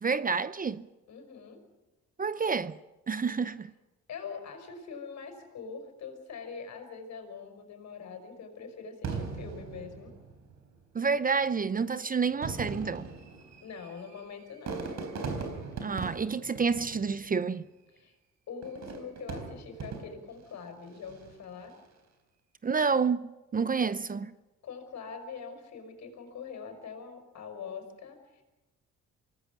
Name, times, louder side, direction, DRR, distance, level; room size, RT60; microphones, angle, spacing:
voice 1, 0.0-0.8 2.2-2.8 3.1-3.7 10.9-13.1 15.8-17.6 22.6-24.3, right 5 dB, 30° right, 0.7 m, -29 dB
voice 2, 1.1-1.6 4.1-10.2 13.6-14.9 17.9-18.2 18.5-21.7 24.6-28.4, left 5 dB, 65° left, 5.6 m, -43 dB
Fireworks, 9.0-10.7 11.5-11.6 12.3-17.6 18.6-20.4 21.0-21.4, right 4 dB, 65° right, 4.2 m, -39 dB
25.5 x 18.5 x 6.2 m
cardioid pair, 90°, 30 cm